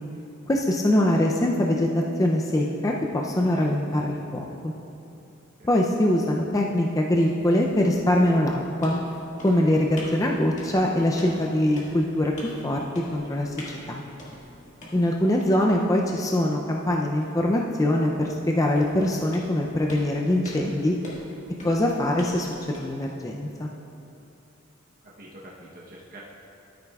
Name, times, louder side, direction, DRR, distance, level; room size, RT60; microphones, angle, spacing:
voice 1, 0.5-4.7 5.6-9.0 9.4-12.8 13.1-13.6 13.9-14.0 14.9-20.9 21.6-23.7, left 1 dB, 15° left, 0 dB, 0.4 m, -23 dB
sound 1, 7.3-22.8, equal, 35° left, 1.8 m, -45 dB
voice 2, 25.0-26.2, right 1 dB, 45° right, -6 dB, 0.9 m, -45 dB
13.0 x 8.7 x 2.3 m, 2.8 s
head